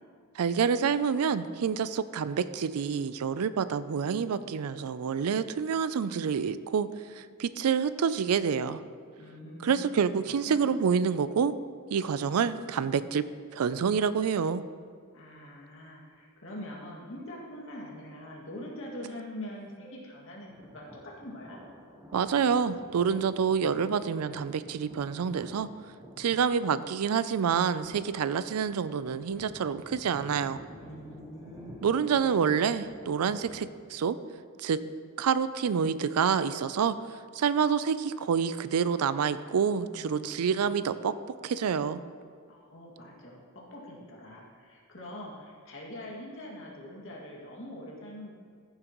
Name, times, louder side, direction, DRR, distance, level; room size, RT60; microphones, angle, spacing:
voice 1, 0.4-6.9 7.1-8.8 9.6-11.5 11.9-13.2 13.5-14.6 22.1-25.7 26.2-30.6 31.8-34.2 34.6-34.8 35.2-41.1 41.4-42.0, right 6 dB, 90° right, 14 dB, 0.4 m, -27 dB
voice 2, 9.2-9.8 10.2-10.7 15.1-21.6 30.7-32.1 39.9-40.7 42.5-48.3, left 1 dB, 65° left, -3 dB, 2.2 m, -44 dB
Thunder, 20.5-33.6, equal, 15° right, 1.1 m, -50 dB
14.5 x 7.5 x 3.0 m, 2.1 s
head